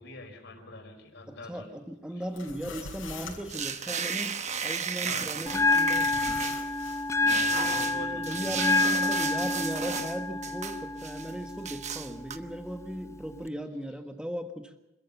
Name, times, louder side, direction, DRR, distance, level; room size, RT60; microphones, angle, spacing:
voice 1, 0.0-1.7 2.1-2.2 5.0-5.5 7.2-8.8, left 2 dB, 65° left, 2 dB, 4.9 m, -45 dB
voice 2, 1.3-6.4 7.2-14.7, equal, 5° right, 6 dB, 1.6 m, -37 dB
sound 1, 2.2-3.9 5.4-7.2, left 4 dB, 90° left, 6.1 m, -43 dB
sound 2, 3.5-7.0 7.3-10.2 10.4-11.3 11.7-12.4, right 7 dB, 40° right, 1.0 m, -34 dB
Bell, 5.5-13.5, left 3 dB, 15° left, 0.6 m, -29 dB
26.5 x 14.0 x 7.2 m, 0.98 s
head